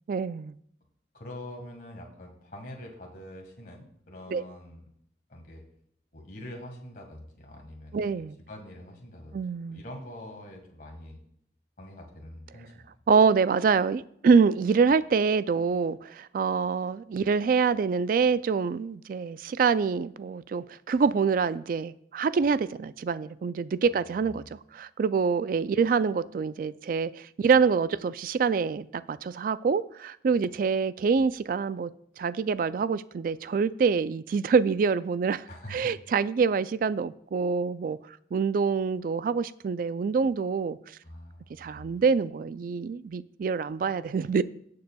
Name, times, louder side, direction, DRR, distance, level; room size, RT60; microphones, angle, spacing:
voice 1, 0.1-0.5 4.3-4.4 7.9-8.4 9.3-9.8 13.1-31.9 32.2-35.4 35.7-38.0 38.3-40.8 41.6-44.4, right 5 dB, 50° right, 0.3 m, -25 dB
voice 2, 1.1-4.8 5.3-5.6 6.1-8.1 8.5-9.4 9.7-11.2 11.8-13.0 23.9-24.1 35.5-35.9 41.0-42.0, left 1 dB, 50° left, 1.6 m, -44 dB
18.0 x 6.8 x 2.3 m
head